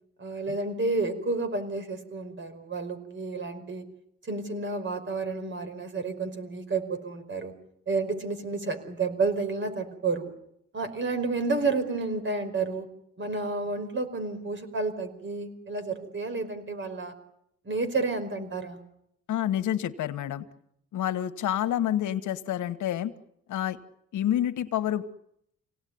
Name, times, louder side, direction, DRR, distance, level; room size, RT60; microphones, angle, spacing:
voice 1, 0.2-3.8 4.3-7.5 7.9-10.3 10.7-12.9 13.2-17.1 17.6-18.8, right 3 dB, 40° right, 8 dB, 5.1 m, -30 dB
voice 2, 19.3-20.4 20.9-23.1 23.5-23.8 24.1-25.0, left 11 dB, 75° left, 10 dB, 1.5 m, -28 dB
27.0 x 18.0 x 9.6 m, 0.76 s
cardioid pair, 90°, 30 cm